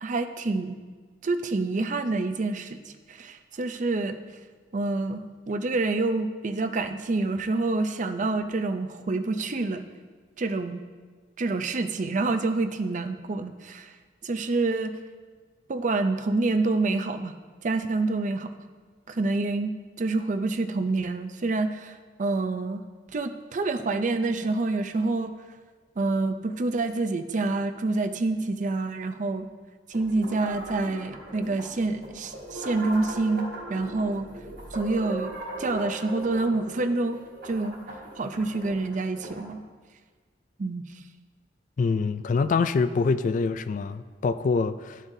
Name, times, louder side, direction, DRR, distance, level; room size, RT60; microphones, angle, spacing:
voice 1, 0.0-0.8 1.2-4.2 4.7-5.2 5.5-9.8 10.4-10.8 11.4-13.9 14.2-14.9 15.7-17.3 17.6-18.5 19.1-22.8 23.1-25.3 26.0-29.5 29.9-34.3 34.7-37.2 37.4-37.8 38.2-39.6 40.6-40.8, right 3 dB, 45° right, 8 dB, 0.5 m, -27 dB
sound 1, 29.9-39.5, right 1 dB, 70° right, 2.9 m, -39 dB
voice 2, 41.8-45.0, left 4 dB, 45° left, 12 dB, 0.3 m, -25 dB
13.0 x 7.3 x 2.7 m, 1.5 s
head